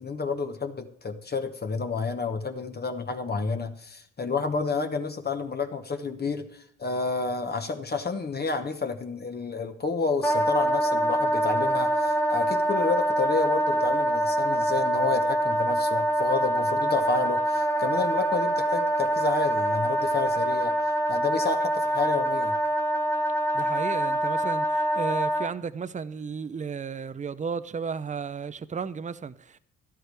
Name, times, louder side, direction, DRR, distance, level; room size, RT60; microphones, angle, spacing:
voice 1, 0.0-20.7 21.1-22.6, left 4 dB, 35° left, 1.2 m, -30 dB
Wind instrument woodwind instrument, 10.2-25.5, right 1 dB, 10° left, 1.2 m, -25 dB
voice 2, 23.5-29.6, right 6 dB, 25° right, 0.6 m, -34 dB
12.5 x 11.5 x 3.4 m
cardioid pair, 90°, 30 cm